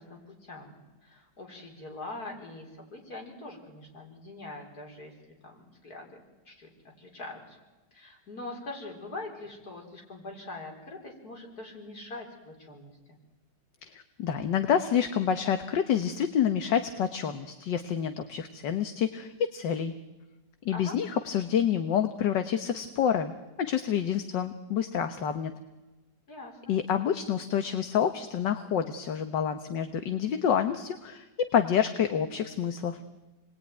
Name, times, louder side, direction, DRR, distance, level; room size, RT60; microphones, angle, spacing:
voice 1, 0.0-5.1 5.4-6.7 7.0-7.6 7.9-13.2 20.7-21.0 26.3-26.7, left 2 dB, 55° left, 1 dB, 5.0 m, -43 dB
voice 2, 13.8-19.9 20.7-23.3 23.6-25.5 26.7-33.0, left 8 dB, 75° left, 8 dB, 1.8 m, -28 dB
28.5 x 21.0 x 9.5 m, 1.1 s
omnidirectional pair, 2.0 m